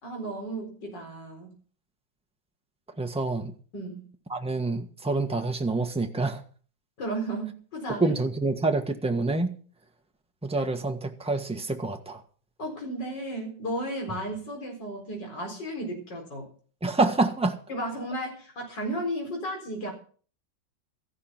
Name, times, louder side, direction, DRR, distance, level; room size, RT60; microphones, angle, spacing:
voice 1, 0.0-1.5 3.7-4.0 7.0-8.1 12.6-16.5 17.7-19.9, right 1 dB, 65° left, 5.0 m, -34 dB
voice 2, 3.0-3.5 4.3-6.4 8.0-9.5 10.4-12.2 16.8-17.6, right 3 dB, 5° right, 1.2 m, -27 dB
14.0 x 11.5 x 5.9 m
omnidirectional pair, 2.0 m